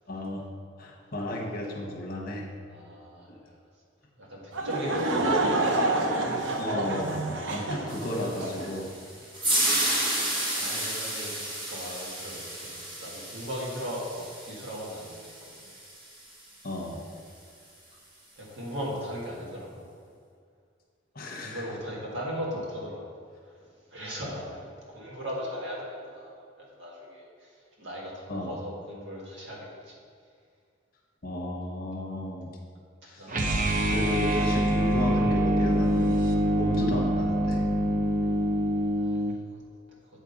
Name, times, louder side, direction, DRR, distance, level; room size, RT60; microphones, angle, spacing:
voice 1, 0.1-0.4 0.8-2.4 6.6-8.9 16.6-17.0 21.1-21.6 28.3-28.6 31.2-32.5 33.0-33.5 33.8-37.6, left 1 dB, 50° left, 0 dB, 1.1 m, -34 dB
voice 2, 2.7-3.6 4.2-5.5 10.6-15.3 15.6-15.7 17.1-17.2 18.4-19.9 21.4-23.1 23.4-29.9 33.2-33.4 36.7-36.8 39.0-39.2, equal, 65° right, -4 dB, 1.9 m, -38 dB
Laughter / Crowd, 4.5-8.7, right 2 dB, 90° right, 0.7 m, -28 dB
sound 1, 7.9-16.2, right 1 dB, 25° right, 1.3 m, -32 dB
sound 2, 33.3-39.4, equal, 45° right, 0.6 m, -25 dB
7.9 x 4.3 x 5.3 m, 2.1 s
head